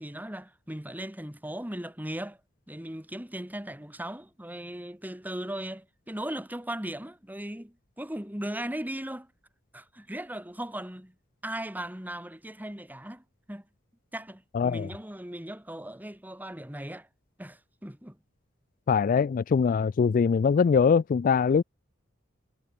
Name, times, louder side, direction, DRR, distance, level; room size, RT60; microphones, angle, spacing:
voice 1, 0.0-2.4 2.7-9.3 9.7-11.1 11.4-13.6 14.1-17.1 17.4-18.2, right 1 dB, 10° right, 2.8 m, -38 dB
voice 2, 14.5-14.9 18.9-21.6, left 6 dB, 40° left, 0.3 m, -22 dB
head